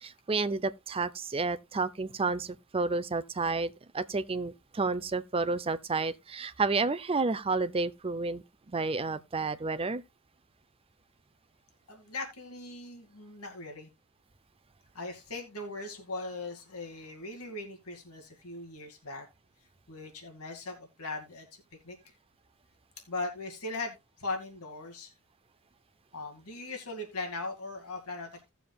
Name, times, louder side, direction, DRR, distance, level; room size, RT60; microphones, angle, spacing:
voice 1, 0.0-10.0, right 3 dB, 25° right, 0.5 m, -31 dB
voice 2, 11.9-13.9 14.9-19.3 19.9-21.5 21.8-22.1 23.1-25.1 26.1-28.5, left 2 dB, 85° left, 2.3 m, -39 dB
17.0 x 7.0 x 2.3 m
head